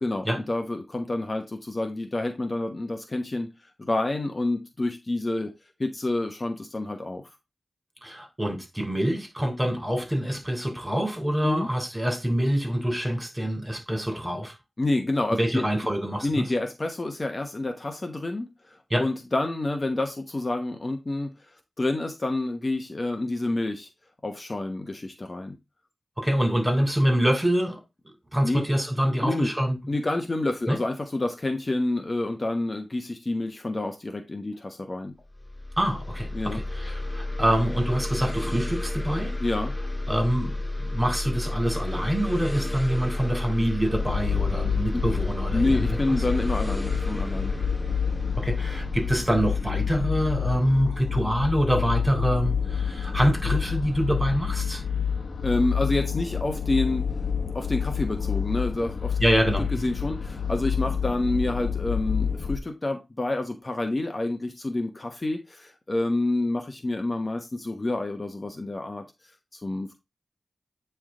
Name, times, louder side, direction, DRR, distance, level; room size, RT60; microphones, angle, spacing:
voice 1, 0.0-5.5 5.8-7.2 11.4-11.7 14.8-15.7 16.2-21.3 21.8-23.9 24.2-25.6 28.4-28.6 29.2-29.5 29.9-35.1 36.3-36.6 39.4-39.7 44.9-45.0 45.5-47.6 55.4-57.1 57.5-59.2 59.8-69.1 69.5-69.9, left 2 dB, 40° left, 1.1 m, -28 dB
voice 2, 8.0-14.5 15.4-16.4 18.9-19.1 26.2-27.8 28.3-29.8 30.7-30.8 35.8-39.3 40.1-46.0 48.4-54.8 59.2-59.7, equal, 15° right, 3.5 m, -25 dB
sound 1, 35.3-50.7, left 2 dB, 5° left, 2.6 m, -32 dB
sound 2, 43.8-62.6, left 7 dB, 65° left, 1.2 m, -28 dB
9.0 x 3.4 x 3.8 m
cardioid pair, 45°, 0 cm